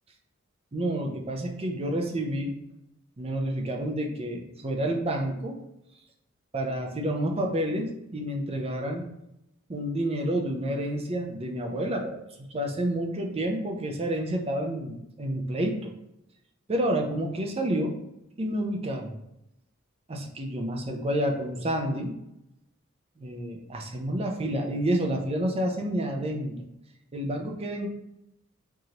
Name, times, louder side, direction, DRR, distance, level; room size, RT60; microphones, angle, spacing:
voice 1, 0.7-2.5 3.2-5.6 6.5-9.1 9.7-12.2 12.5-15.9 16.7-17.9 18.4-19.1 20.1-22.1 23.2-26.6 27.1-27.9, right 1 dB, 30° right, 2 dB, 0.6 m, -29 dB
4.7 x 2.6 x 2.8 m, 0.83 s
head